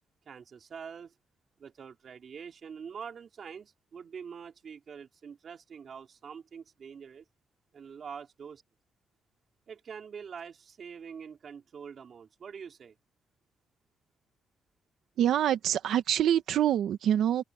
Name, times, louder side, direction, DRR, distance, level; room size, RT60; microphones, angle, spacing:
voice 1, 0.3-1.1 1.6-7.3 7.7-8.6 9.7-13.0, right 6 dB, 40° right, 3.7 m, -45 dB
voice 2, 15.2-17.4, right 10 dB, 70° right, 1.4 m, -25 dB
cardioid pair, 160°, 0 cm